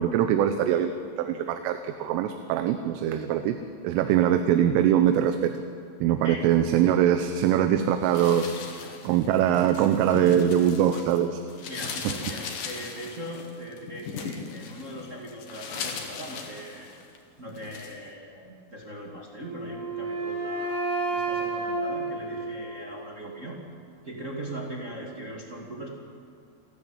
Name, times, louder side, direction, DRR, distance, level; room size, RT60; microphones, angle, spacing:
voice 1, 0.0-3.6 3.8-5.6 6.0-8.5 9.0-11.4, right 10 dB, 80° right, 8 dB, 3.4 m, -23 dB
sound 1, 8.0-11.2 11.5-17.2 17.6-18.0, left 5 dB, 55° left, 2.7 m, -38 dB
voice 2, 11.7-17.0 17.4-20.8 21.1-23.6 24.0-25.9, right 1 dB, 45° right, -2 dB, 1.0 m, -40 dB
Wind instrument woodwind instrument, 19.4-23.3, right 3 dB, 60° right, 5.7 m, -31 dB
29.0 x 13.0 x 8.8 m, 2.5 s
omnidirectional pair, 5.8 m